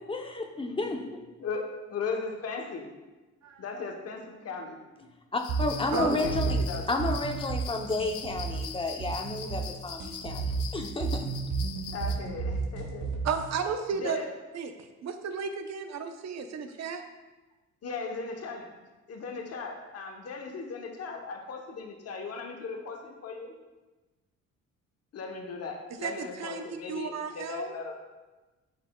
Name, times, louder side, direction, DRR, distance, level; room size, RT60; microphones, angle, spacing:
voice 1, 0.0-1.0 5.3-6.6 6.9-11.3, left 2 dB, 20° left, 4 dB, 0.7 m, -31 dB
voice 2, 1.4-2.9 3.6-5.1 5.9-6.8 11.9-13.2 13.9-14.3 17.8-18.7 19.1-23.5 25.1-28.1, left 4 dB, 55° left, 2 dB, 0.9 m, -37 dB
voice 3, 3.4-3.8 5.9-6.2 13.2-14.2 14.5-17.0 26.0-27.8, right 6 dB, 60° right, 7 dB, 0.7 m, -33 dB
sound 1, 5.4-12.2, left 8 dB, 85° left, 0.7 m, -43 dB
sound 2, 5.5-13.5, right 4 dB, 90° right, 0.9 m, -32 dB
10.0 x 4.2 x 2.3 m, 1.2 s
cardioid pair, 90°, 30 cm